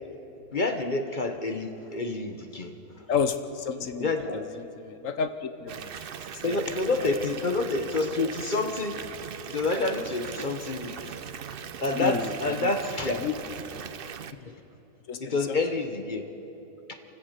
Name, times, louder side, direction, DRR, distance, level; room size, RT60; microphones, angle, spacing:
voice 1, 0.5-2.7 4.0-4.6 6.4-9.0 9.5-11.0 11.8-13.2 14.5-14.6 15.2-16.2 16.9-17.0, left 3 dB, 35° left, 6 dB, 1.0 m, -28 dB
voice 2, 3.1-6.1 6.4-6.6 7.0-7.1 11.9-12.7 13.1-13.3 13.7-13.8 15.1-15.6, left 6 dB, 55° left, 10 dB, 1.1 m, -31 dB
Water tap faucet / Bathtub (filling or washing) / Fill (with liquid), 5.7-14.3, right 7 dB, 65° right, 0.5 m, -39 dB
27.5 x 16.5 x 6.7 m, 2.9 s
omnidirectional pair, 1.8 m